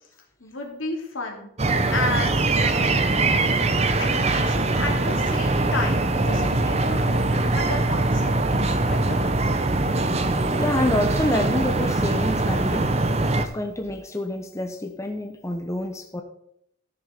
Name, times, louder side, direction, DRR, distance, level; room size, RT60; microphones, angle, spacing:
voice 1, 0.4-1.5 1.9-3.0 4.0-8.3 8.8-9.2, left 2 dB, 80° left, 1 dB, 2.7 m, -32 dB
sound 1, 1.6-13.5, right 2 dB, 30° right, 0.7 m, -22 dB
voice 2, 10.6-12.9 13.4-16.2, left 1 dB, 15° left, 4 dB, 0.7 m, -28 dB
13.5 x 6.6 x 5.1 m, 0.74 s
head